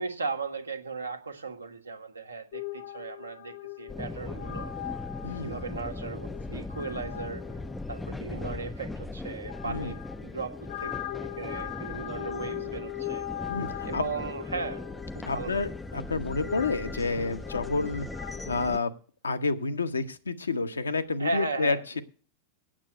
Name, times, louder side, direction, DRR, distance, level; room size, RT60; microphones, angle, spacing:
voice 1, 0.0-4.7 5.2-7.4 7.9-10.9 11.4-13.3 13.8-14.8 15.1-15.7 21.2-22.0, right 3 dB, 80° right, 6 dB, 1.3 m, -36 dB
sound 1, 2.5-18.5, left 14 dB, 55° left, 0.8 m, -41 dB
sound 2, 3.9-18.8, left 2 dB, 5° left, 0.4 m, -39 dB
voice 2, 5.2-5.6 9.7-9.9 13.5-14.0 15.3-18.1 18.5-18.9 19.2-22.0, left 3 dB, 75° left, 9 dB, 1.0 m, -29 dB
8.9 x 7.4 x 8.0 m, 0.39 s
figure-of-eight pair, 90°, 0 cm